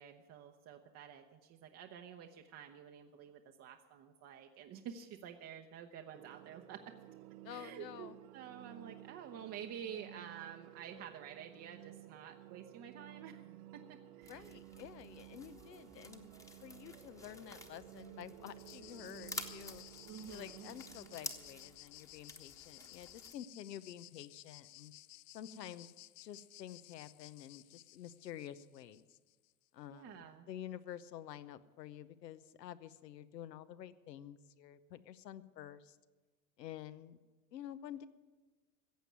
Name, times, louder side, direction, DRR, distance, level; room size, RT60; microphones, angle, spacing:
voice 1, 0.0-6.8 7.5-13.4 13.7-14.7 20.0-20.7 29.9-30.5, right 8 dB, 30° right, 4 dB, 0.9 m, -50 dB
sound 1, 6.1-21.8, right 15 dB, 60° right, 0.7 m, -55 dB
voice 2, 7.4-8.2 14.3-16.3 16.6-19.8 20.3-24.9 25.3-25.9 26.2-29.0 29.7-36.0 36.6-37.2 37.5-38.1, left 10 dB, 75° left, 14 dB, 1.0 m, -50 dB
sound 2, 14.2-23.3, left 2 dB, 5° left, 1.2 m, -51 dB
sound 3, 18.6-29.5, left 17 dB, 50° left, 0.5 m, -57 dB
15.0 x 8.0 x 9.3 m, 1.3 s
hypercardioid pair, 95°, 50 cm